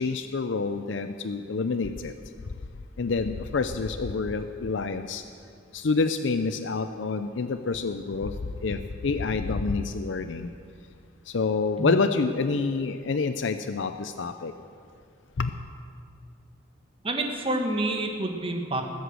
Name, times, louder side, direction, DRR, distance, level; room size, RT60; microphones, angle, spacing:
voice 1, 0.0-2.1 3.0-5.2 5.7-8.3 8.6-10.5 11.3-14.5 15.4-15.5, left 4 dB, 70° left, 9 dB, 0.5 m, -27 dB
voice 2, 17.0-18.8, right 1 dB, 30° right, 4 dB, 1.5 m, -28 dB
19.5 x 8.1 x 7.8 m, 2.3 s
head